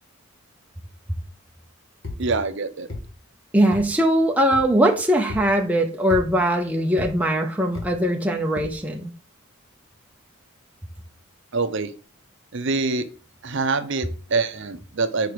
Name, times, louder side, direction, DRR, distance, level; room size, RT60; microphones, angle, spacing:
sound 1, 2.0-2.2 2.9-3.0 3.7-3.9 4.5-4.7 5.3-5.5 6.1-6.3 7.0-7.1 7.8-7.9 8.6-8.8, left 2 dB, 60° left, 1.7 m, -32 dB
voice 1, 2.2-2.9 11.5-11.9 12.5-13.1 13.4-15.3, right 3 dB, 55° right, 10 dB, 0.7 m, -25 dB
voice 2, 3.5-9.1, right 1 dB, 5° right, 1 dB, 0.6 m, -21 dB
4.8 x 4.7 x 4.9 m, 0.36 s
head